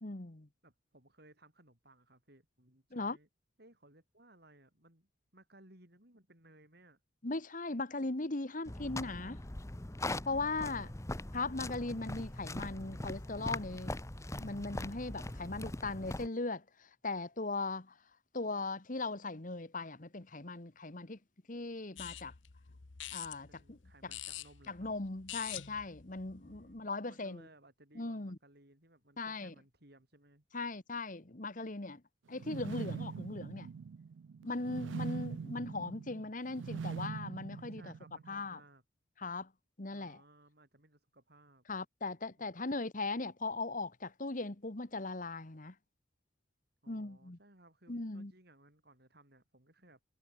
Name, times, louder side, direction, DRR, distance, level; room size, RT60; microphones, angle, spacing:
voice 1, 0.0-0.5 2.9-3.2 7.2-9.4 10.3-10.9 11.3-14.0 14.4-18.0 18.3-21.2 21.5-22.3 23.1-24.1 24.7-27.5 27.9-28.4 29.2-29.5 30.5-32.0 32.3-33.7 34.4-37.9 38.3-38.6 39.2-39.5 39.8-40.2 41.7-45.7 46.9-47.4 47.9-48.3, left 3 dB, 45° left, 1.4 m, -39 dB
voice 2, 0.6-3.3 3.6-7.0 10.5-10.9 14.9-16.1 23.5-24.9 26.4-30.4 37.5-38.8 39.9-41.6 42.4-42.5 46.8-50.0, right 1 dB, 55° right, 7.8 m, -62 dB
sound 1, 8.7-16.3, left 2 dB, 15° left, 0.8 m, -41 dB
sound 2, 22.0-26.8, left 12 dB, 80° left, 1.0 m, -47 dB
sound 3, 32.3-38.4, right 5 dB, 75° right, 0.4 m, -42 dB
head